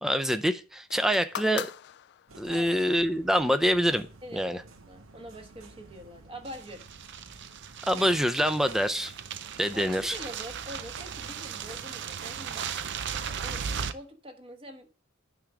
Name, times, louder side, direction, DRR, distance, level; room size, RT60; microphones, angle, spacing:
voice 1, 0.0-1.7 2.4-4.1 4.3-4.6 7.9-9.1 9.6-10.2, equal, ahead, 10 dB, 0.5 m, -25 dB
sound 1, 0.9-2.7 3.6-3.7, left 10 dB, 55° left, 0.3 m, -40 dB
sound 2, 2.3-12.7, right 3 dB, 75° right, 1.1 m, -51 dB
voice 2, 2.5-2.8 4.2-6.9 9.7-12.7 13.3-13.6 13.9-14.9, equal, 25° right, 3 dB, 1.3 m, -44 dB
sound 3, 6.4-13.9, right 7 dB, 60° right, 0.6 m, -37 dB
9.9 x 3.7 x 6.1 m, 0.38 s
head